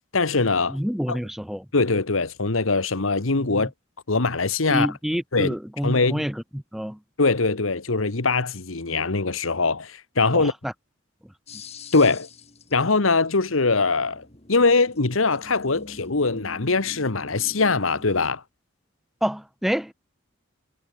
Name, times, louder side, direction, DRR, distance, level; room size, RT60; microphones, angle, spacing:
voice 1, 0.1-0.8 1.1-1.2 1.7-3.7 4.1-4.9 5.3-5.5 5.8-6.2 7.2-10.5 11.9-12.3 12.7-18.4, left 3 dB, 85° left, 1.5 m, -22 dB
voice 2, 0.7-1.7 3.4-3.7 4.7-7.0 10.3-10.7 19.2-19.9, equal, ahead, 0.4 m, -28 dB
sound 1, 11.5-18.3, left 2 dB, 30° left, 2.9 m, -45 dB
head